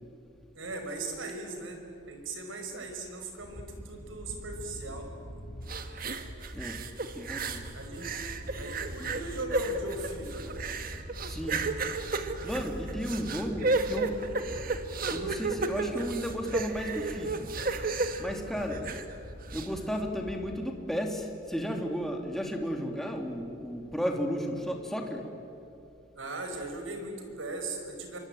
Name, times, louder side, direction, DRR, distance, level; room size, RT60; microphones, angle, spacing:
voice 1, 0.5-1.8 2.1-5.1 7.7-8.1 8.6-10.5 18.7-18.9 26.2-28.2, right 2 dB, 90° right, 4 dB, 5.4 m, -38 dB
sound 1, 3.4-20.5, equal, 80° left, 5.6 m, -44 dB
sound 2, 5.7-7.7 8.0-19.1 19.5-19.7, right 3 dB, 45° right, 1.7 m, -33 dB
voice 2, 7.1-7.7 11.3-11.6 12.4-14.2 15.1-17.5 18.2-18.9 19.5-25.3, equal, ahead, 2 dB, 2.6 m, -34 dB
27.5 x 24.0 x 9.1 m, 2.7 s
head